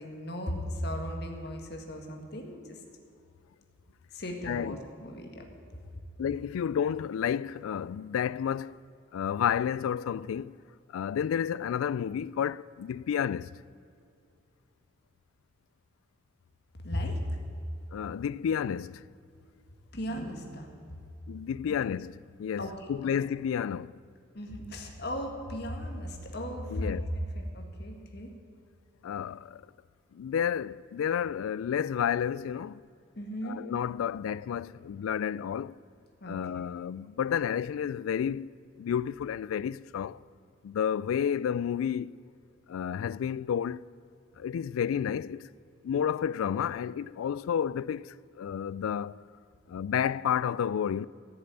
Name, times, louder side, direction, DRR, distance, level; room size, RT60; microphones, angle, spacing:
voice 1, 0.0-2.8 4.1-5.4 16.8-17.4 19.9-20.7 22.6-22.9 24.3-28.3 33.2-33.6 36.2-36.7, equal, 50° left, 1.7 m, -36 dB
voice 2, 4.5-4.8 6.2-8.8 9.1-10.6 10.9-13.6 17.9-19.0 21.3-23.9 26.7-27.1 29.0-29.7 30.1-32.8 33.4-35.8 36.3-38.5 38.8-40.2 40.6-42.1 42.7-43.9 44.4-45.5 45.8-49.2 49.7-51.1, left 8 dB, 90° left, 0.3 m, -31 dB
15.0 x 6.8 x 9.1 m
head